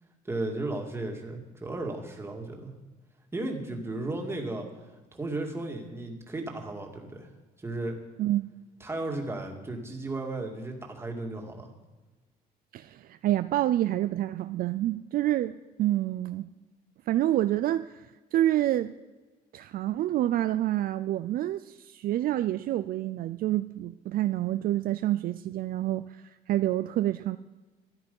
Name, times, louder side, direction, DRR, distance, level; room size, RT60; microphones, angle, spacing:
voice 1, 0.2-2.7 3.3-7.3 7.6-8.0 8.8-11.7, right 2 dB, 15° right, 2 dB, 2.2 m, -35 dB
voice 2, 12.7-16.5 17.1-18.9 19.5-27.4, right 13 dB, 60° right, 12 dB, 0.4 m, -28 dB
13.5 x 10.5 x 5.4 m, 1.2 s
cardioid pair, 110°, 17 cm